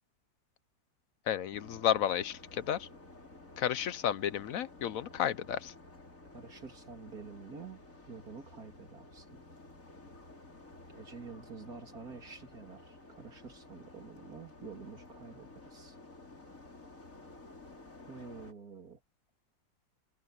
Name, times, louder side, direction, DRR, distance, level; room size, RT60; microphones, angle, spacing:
voice 1, 1.3-2.9 3.6-5.7, left 10 dB, 65° left, 0.9 m, -32 dB
sound 1, 1.5-18.5, left 2 dB, 45° left, 4.7 m, -53 dB
voice 2, 6.3-9.5 10.9-16.0 18.1-19.0, right 5 dB, 50° right, 3.5 m, -48 dB
omnidirectional pair, 2.0 m